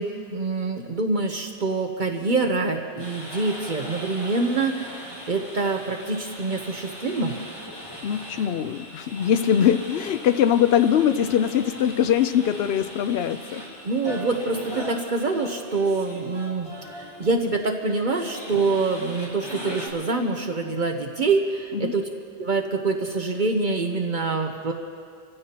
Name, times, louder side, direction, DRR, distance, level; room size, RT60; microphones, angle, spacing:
voice 1, 0.0-7.3 13.8-22.1 22.4-24.7, right 3 dB, 50° right, 3 dB, 1.0 m, -25 dB
sound 1, 3.0-19.9, equal, 25° left, 3.2 m, -40 dB
voice 2, 8.0-13.6 21.7-21.9, left 9 dB, 80° left, 11 dB, 0.8 m, -22 dB
27.0 x 15.0 x 2.9 m, 2.3 s
omnidirectional pair, 1.0 m